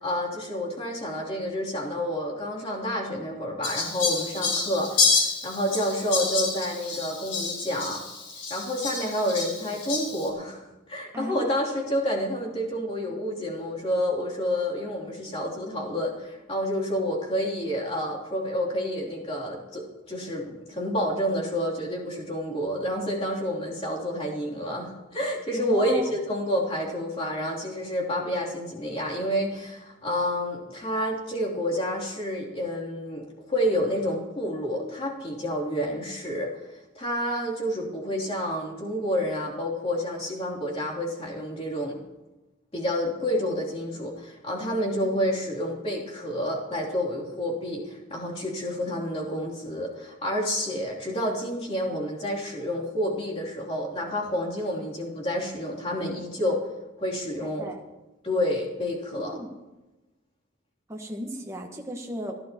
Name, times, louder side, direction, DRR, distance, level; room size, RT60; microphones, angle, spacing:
voice 1, 0.0-8.0 8.5-36.5 36.9-41.9 42.7-56.7 57.0-57.7 58.2-59.4, equal, 30° left, -4 dB, 3.3 m, -29 dB
Fowl, 3.6-10.3, left 4 dB, 70° left, 4.4 m, -28 dB
voice 2, 11.1-11.5 25.6-26.1 57.4-57.8 59.1-59.5 60.9-62.4, right 1 dB, 15° right, 2 dB, 1.5 m, -35 dB
28.5 x 11.5 x 3.1 m, 1.1 s
head